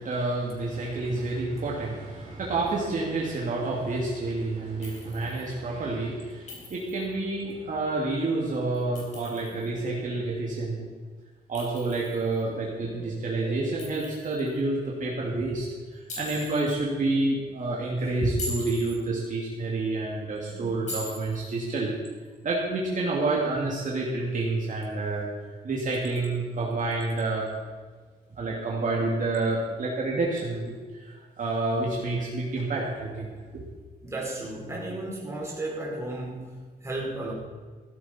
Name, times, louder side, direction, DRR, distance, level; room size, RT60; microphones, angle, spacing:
voice 1, 0.0-10.9 11.5-22.0 22.4-25.3 25.6-27.5 28.4-30.7 31.0-33.6, right 2 dB, 55° right, -3 dB, 2.4 m, -29 dB
Chink clink, 4.8-5.5 6.5-7.1 8.7-9.6 11.6-12.4 13.8-14.5 16.1-16.8 18.2-19.0 20.9-21.5, left 1 dB, 50° left, 4.5 m, -40 dB
voice 2, 34.0-36.5 36.8-37.3, right 2 dB, 15° right, -4 dB, 4.6 m, -34 dB
15.5 x 12.5 x 4.4 m, 1.5 s
wide cardioid pair, 155°, 16 cm